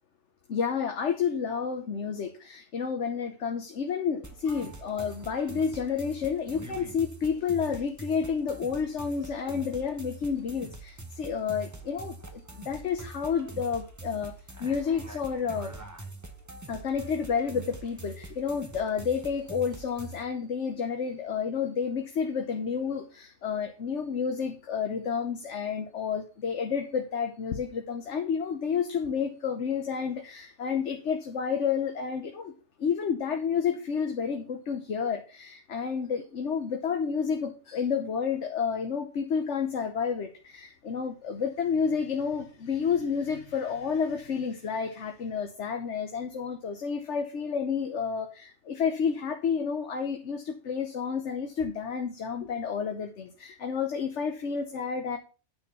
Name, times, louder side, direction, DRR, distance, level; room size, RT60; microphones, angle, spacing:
voice 1, 0.5-14.3 14.6-15.7 16.7-32.5 32.8-55.2, left 6 dB, 70° left, 5 dB, 1.3 m, -30 dB
sound 1, 4.2-20.2, right 3 dB, 15° right, 1.0 m, -44 dB
9.5 x 4.4 x 6.9 m, 0.34 s
omnidirectional pair, 1.3 m